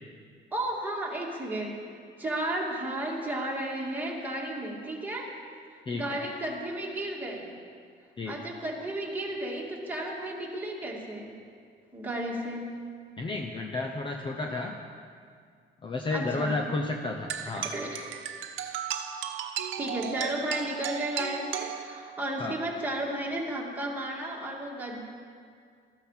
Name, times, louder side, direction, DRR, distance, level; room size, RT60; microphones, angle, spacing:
voice 1, 0.5-1.8 2.2-5.3 5.9-7.5 8.3-11.3 11.9-12.7 16.1-16.6 17.7-18.1 19.8-25.0, right 1 dB, 10° right, -3 dB, 2.4 m, -33 dB
voice 2, 5.9-6.2 8.2-8.4 13.2-14.8 15.8-17.7 22.4-22.6, left 3 dB, 25° left, 3 dB, 0.8 m, -32 dB
sound 1, 17.3-22.3, right 9 dB, 75° right, 1.0 m, -35 dB
15.0 x 13.5 x 5.8 m, 2.2 s
cardioid pair, 150°, 20 cm